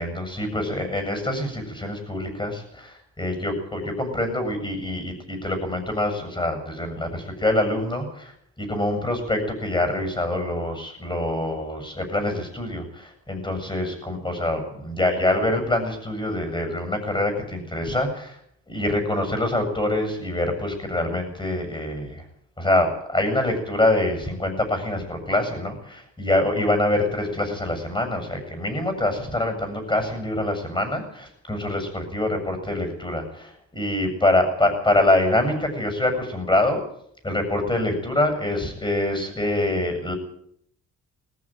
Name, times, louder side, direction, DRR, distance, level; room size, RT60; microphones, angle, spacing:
voice 1, 0.0-18.4 18.7-22.2 22.6-36.8 37.2-40.1, left 1 dB, 15° left, 7 dB, 7.6 m, -25 dB
19.5 x 15.0 x 9.2 m, 0.70 s
cardioid pair, 90°, 30 cm